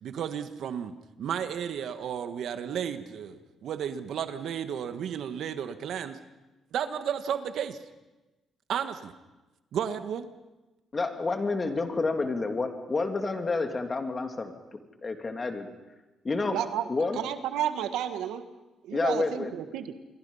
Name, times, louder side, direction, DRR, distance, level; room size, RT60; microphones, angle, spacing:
voice 1, 0.0-6.2 6.7-7.8 8.7-9.1 9.7-10.3, right 8 dB, 70° right, 10 dB, 1.5 m, -33 dB
voice 2, 10.9-14.5 15.0-15.7 16.2-16.6 16.9-17.2 18.9-19.5, left 3 dB, 30° left, 5 dB, 2.8 m, -29 dB
voice 3, 16.5-16.8 17.1-18.4 18.8-19.9, right 10 dB, 85° right, 9 dB, 1.6 m, -31 dB
28.0 x 23.0 x 5.6 m, 1.1 s
cardioid pair, 90°, 0 cm